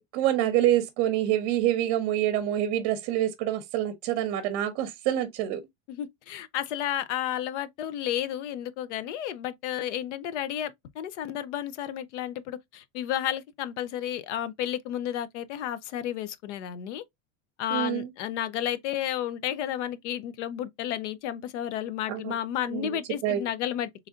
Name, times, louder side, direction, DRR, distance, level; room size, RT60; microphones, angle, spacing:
voice 1, 0.1-5.6 17.7-18.1 22.1-22.3 22.7-23.5, right 12 dB, 45° right, 0.7 m, -26 dB
voice 2, 5.9-17.0 17.6-23.9, left 11 dB, 80° left, 0.7 m, -32 dB
3.7 x 3.2 x 2.4 m
supercardioid pair, 155°, 35 cm